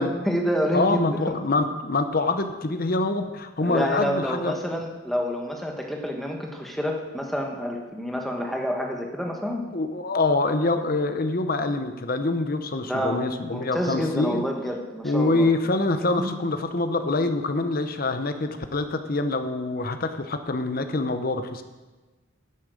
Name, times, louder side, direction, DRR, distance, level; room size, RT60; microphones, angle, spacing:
voice 1, 0.0-1.4 3.6-9.6 12.8-15.5 16.2-16.3, equal, ahead, 1 dB, 1.4 m, -28 dB
voice 2, 0.7-4.5 9.7-14.4 15.0-21.6, left 2 dB, 45° left, 8 dB, 0.9 m, -25 dB
11.0 x 8.8 x 6.5 m, 1.2 s
head